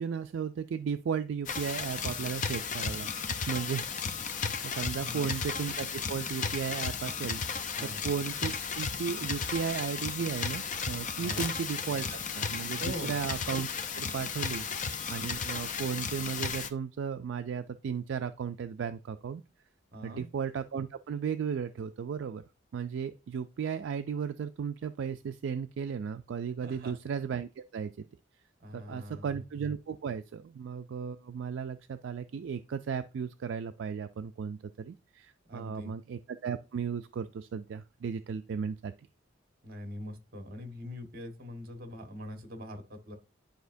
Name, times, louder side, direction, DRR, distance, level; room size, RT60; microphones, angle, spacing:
voice 1, 0.0-3.1 3.5-3.9 4.6-13.7 13.9-19.4 20.0-22.4 22.7-28.0 28.7-38.9, right 6 dB, 70° right, 10 dB, 0.3 m, -35 dB
sound 1, 1.5-16.7, left 5 dB, 40° left, 0.5 m, -34 dB
voice 2, 5.0-5.3 7.7-8.0 11.2-11.5 12.8-13.2 19.9-20.3 26.6-26.9 28.6-29.3 35.5-35.9 39.6-43.2, equal, 45° right, 5 dB, 1.3 m, -42 dB
10.5 x 5.0 x 2.6 m, 0.31 s
head